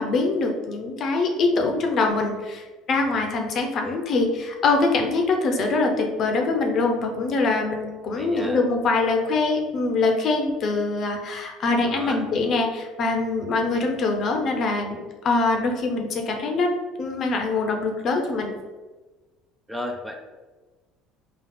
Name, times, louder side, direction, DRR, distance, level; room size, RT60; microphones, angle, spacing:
voice 1, 0.0-15.0 15.2-16.7 17.0-18.5, left 3 dB, 50° left, 3 dB, 0.6 m, -23 dB
voice 2, 3.6-4.0 8.1-8.6 11.8-12.3 19.7-20.2, left 1 dB, 5° right, 3 dB, 0.4 m, -34 dB
3.7 x 2.3 x 3.7 m, 1.3 s
supercardioid pair, 100°, 0 cm